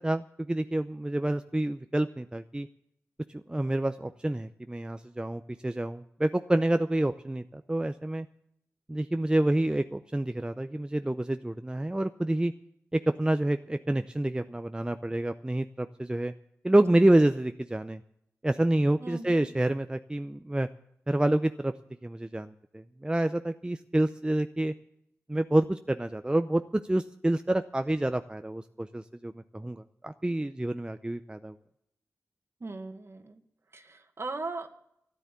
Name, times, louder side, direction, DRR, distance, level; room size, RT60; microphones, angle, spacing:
voice 1, 0.0-2.7 3.3-8.3 8.9-12.5 12.9-16.3 16.6-18.0 18.4-20.7 21.1-21.7 22.0-24.7 25.3-31.6, right 1 dB, 15° right, 9 dB, 0.6 m, -28 dB
voice 2, 19.0-19.5 32.6-33.4 33.7-34.7, right 3 dB, 50° right, 7 dB, 1.7 m, -38 dB
13.5 x 10.0 x 8.2 m, 0.75 s
cardioid pair, 50°, 6 cm